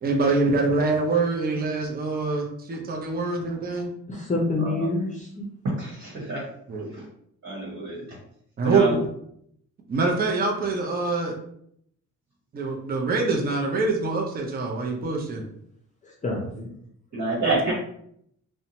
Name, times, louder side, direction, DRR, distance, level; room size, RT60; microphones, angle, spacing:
voice 1, 0.0-3.9 6.7-6.9 8.6-8.9 9.9-11.3 12.5-15.4 17.4-17.7, right 3 dB, 30° right, 0 dB, 0.6 m, -25 dB
voice 2, 4.1-5.4 16.0-16.7, left 2 dB, 25° left, -1 dB, 0.6 m, -27 dB
voice 3, 5.8-6.4 6.9-7.0 7.4-8.0 8.6-9.0 17.1-17.7, right 2 dB, 55° right, -5 dB, 1.3 m, -27 dB
2.6 x 2.2 x 2.8 m, 0.70 s
cardioid pair, 90°, 30 cm